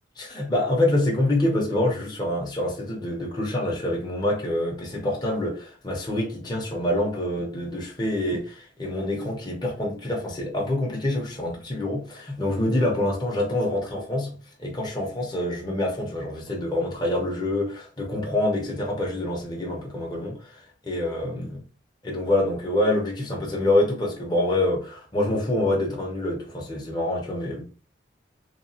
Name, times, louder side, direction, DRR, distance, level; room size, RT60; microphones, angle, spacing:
voice 1, 0.2-21.6 22.0-27.6, left 1 dB, 25° left, 0.7 m, -26 dB
2.9 x 2.2 x 2.7 m
head